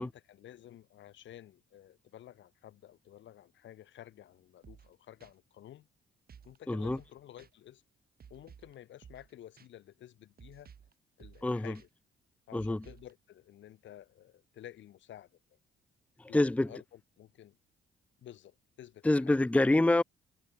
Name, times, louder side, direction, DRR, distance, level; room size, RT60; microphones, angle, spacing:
voice 1, 0.0-5.9 6.4-7.8 8.3-10.7 11.2-11.9 12.5-15.4 16.3-17.6 18.2-19.4, left 12 dB, 70° left, 1.5 m, -52 dB
sound 1, 4.6-4.9 5.2-5.3 6.3-6.6 6.8-7.1 7.4-7.5 8.2-8.7 9.0-9.3 9.6-9.7 10.4-10.9 11.2-11.5 11.7-11.9 12.6-13.1, right 7 dB, 50° right, 4.3 m, -55 dB
voice 2, 6.7-7.0 11.4-11.8 12.5-12.8 16.2-16.7 19.0-20.0, left 2 dB, 5° left, 0.7 m, -26 dB
cardioid pair, 90°, 20 cm